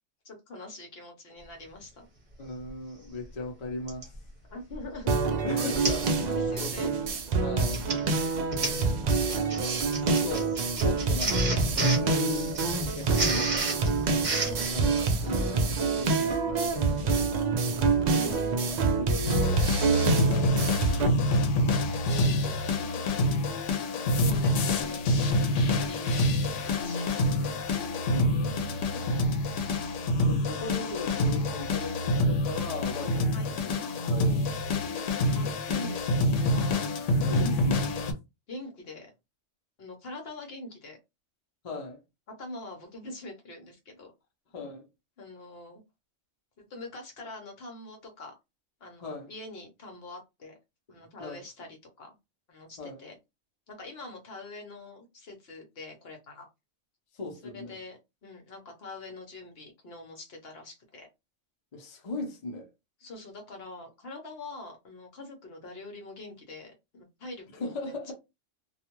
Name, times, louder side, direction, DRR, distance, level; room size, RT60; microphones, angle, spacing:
voice 1, 0.2-2.1 4.5-5.1 6.3-7.0 7.7-8.1 14.4-15.5 18.1-18.8 22.1-23.1 24.2-25.3 25.8-26.1 26.4-28.1 33.3-33.5 35.3-36.7 38.5-39.1 39.8-41.0 42.4-44.1 45.2-45.8 46.6-48.3 48.8-50.5 50.9-52.1 52.5-53.2 53.7-56.5 57.4-61.1 63.0-68.1, left 2 dB, 60° left, 1.0 m, -44 dB
voice 2, 2.4-4.1 5.4-7.0 7.4-7.9 8.2-8.4 10.0-14.0 14.7-17.9 18.3-19.7 20.1-21.5 22.2-22.5 22.8-23.0 25.4-25.8 28.1-29.2 30.2-34.8 37.2-37.9 41.6-42.0 44.5-44.9 49.0-49.3 51.2-51.4 52.8-53.0 57.1-57.8 61.7-62.7 67.6-68.1, left 2 dB, 40° left, 0.7 m, -38 dB
Printer, 2.7-2.8 3.9-4.2 4.7-5.0 5.2-5.3 5.8-6.1 6.4-6.7 7.5-14.7, right 2 dB, 40° right, 0.9 m, -31 dB
sound 1, 5.1-21.1, right 4 dB, 65° right, 0.4 m, -27 dB
sound 2, 19.2-38.1, left 1 dB, 80° left, 1.0 m, -27 dB
2.4 x 2.3 x 2.9 m
omnidirectional pair, 1.3 m